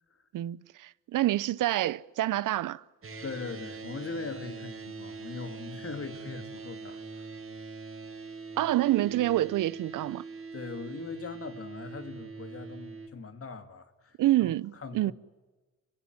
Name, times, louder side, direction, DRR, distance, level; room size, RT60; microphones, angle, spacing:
voice 1, 0.3-2.8 8.6-10.2 14.2-15.1, right 15 dB, 80° right, 0.7 m, -27 dB
sound 1, 3.0-13.1, right 4 dB, 45° right, 3.8 m, -43 dB
voice 2, 3.2-7.3 10.5-15.1, left 4 dB, 45° left, 2.7 m, -41 dB
29.5 x 16.0 x 9.6 m
cardioid pair, 80°, 31 cm